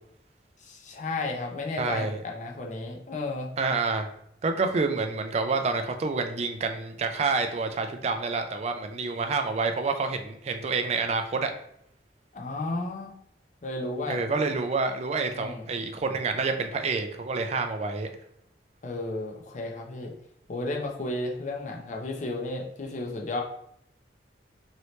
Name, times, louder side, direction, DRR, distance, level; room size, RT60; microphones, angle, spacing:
voice 1, 0.6-3.5 12.3-13.1 13.6-14.2 15.3-15.6 18.8-20.1 20.5-23.4, left 2 dB, 45° left, 0 dB, 0.5 m, -33 dB
voice 2, 1.8-2.2 3.6-4.1 4.4-11.5 14.1-18.1, right 4 dB, 35° right, 6 dB, 0.3 m, -28 dB
3.1 x 2.8 x 3.1 m, 0.73 s
head